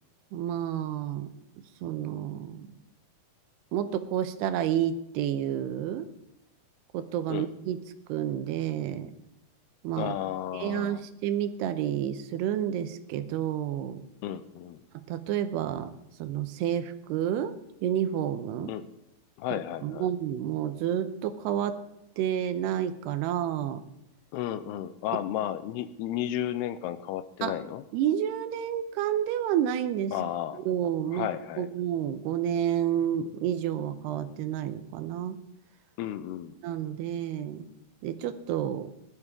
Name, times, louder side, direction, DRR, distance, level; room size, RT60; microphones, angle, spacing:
voice 1, 0.3-1.3 1.8-2.7 3.7-6.1 6.9-7.8 8.1-9.1 9.8-10.1 10.5-14.0 14.9-15.9 16.2-17.6 17.8-18.7 19.5-21.8 22.2-23.8 27.4-27.6 27.9-30.1 30.7-31.3 31.6-35.4 36.6-37.7 38.0-38.9, right 10 dB, 85° right, 10 dB, 3.0 m, -30 dB
voice 2, 10.0-11.0 14.2-14.8 18.7-18.8 19.4-20.1 24.3-27.8 30.1-30.6 31.1-31.7 36.0-36.6, left 11 dB, 85° left, 12 dB, 2.7 m, -33 dB
19.5 x 12.5 x 3.7 m, 0.85 s
omnidirectional pair, 4.7 m